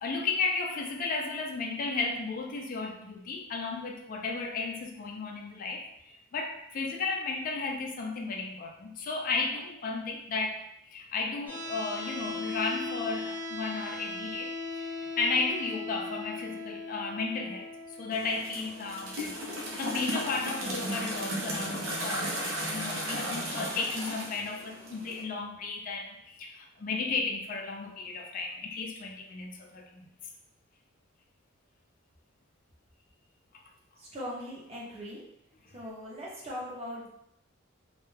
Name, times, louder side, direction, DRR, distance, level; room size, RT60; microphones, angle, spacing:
voice 1, 0.0-10.6 10.9-14.5 14.8-17.7 18.0-22.3 22.7-30.0, left 4 dB, 40° left, 1 dB, 0.3 m, -34 dB
sound 1, 11.5-23.5, left 3 dB, 10° left, 0.7 m, -40 dB
sound 2, 18.1-25.2, equal, 80° right, 0.6 m, -35 dB
voice 2, 34.0-35.2 35.7-37.1, equal, 30° right, -4 dB, 0.7 m, -40 dB
2.2 x 2.2 x 3.1 m, 0.77 s
head